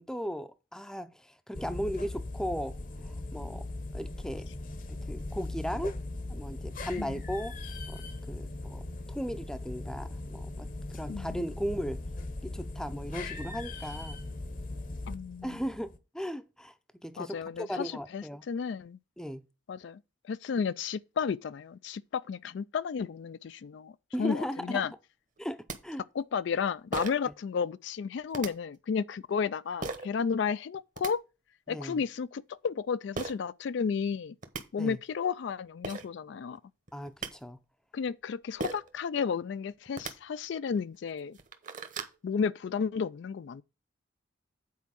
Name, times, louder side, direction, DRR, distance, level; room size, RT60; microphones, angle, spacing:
voice 1, 0.0-3.7 3.9-4.5 5.1-6.0 6.3-7.6 7.9-8.0 8.3-8.8 9.1-12.0 12.4-14.2 15.4-16.7 17.0-18.4 19.2-19.4 24.1-24.8 25.4-26.0 31.7-32.0 34.8-35.0 36.9-37.6, equal, 5° left, 0.5 m, -37 dB
sound 1, 1.5-16.0, left 2 dB, 45° left, 0.9 m, -39 dB
voice 2, 11.1-11.6 15.1-15.6 17.2-19.0 19.7-23.9 24.2-24.9 26.1-31.2 31.7-34.4 34.7-36.6 37.9-41.4 42.2-43.6, left 6 dB, 60° left, 0.3 m, -33 dB
sound 2, 25.4-25.5 25.7-25.8 26.9-27.3 28.3-28.5 29.8-30.1 30.7-31.1 33.1-33.3 34.1-34.2 34.4-34.6 35.5-35.6 35.8-36.1 36.9-37.3 38.6-38.9 39.9-40.1 40.8-40.9 41.3-42.2, right 3 dB, 40° right, 1.0 m, -36 dB
8.4 x 4.5 x 6.3 m
head